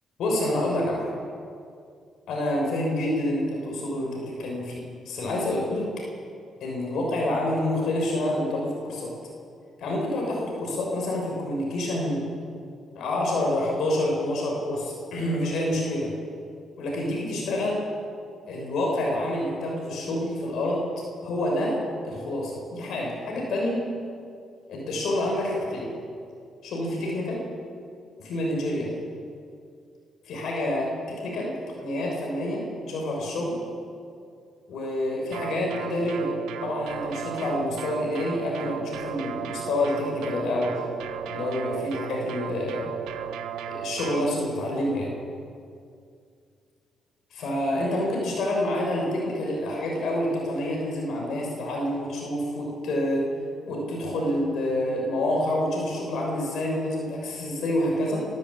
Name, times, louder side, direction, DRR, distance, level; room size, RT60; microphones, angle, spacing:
voice 1, 0.2-1.1 2.3-4.7 5.0-5.9 6.6-9.2 9.8-12.2 12.9-16.1 16.8-17.8 18.5-20.8 21.2-23.9 24.7-25.9 26.6-27.4 28.2-28.9 30.2-33.6 34.7-36.3 36.6-40.8 41.3-42.9 43.7-45.1 47.3-53.3 53.7-58.3, left 1 dB, 75° left, -1 dB, 6.4 m, -28 dB
sound 1, 35.3-44.3, right 9 dB, 90° right, 1.1 m, -35 dB
23.0 x 13.0 x 8.7 m, 2.3 s
cardioid pair, 90°, 0 cm